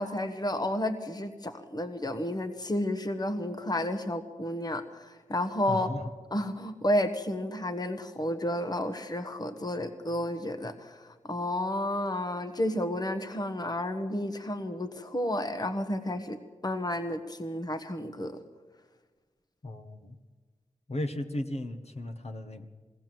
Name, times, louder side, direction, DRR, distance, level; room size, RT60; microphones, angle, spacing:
voice 1, 0.0-5.9 6.3-16.4 16.6-18.4, left 1 dB, 30° left, 8 dB, 1.4 m, -31 dB
voice 2, 5.7-6.0 19.6-20.2 20.9-22.7, left 1 dB, 50° left, 5 dB, 1.5 m, -35 dB
21.0 x 17.5 x 7.8 m, 1.4 s
cardioid pair, 55°, 14 cm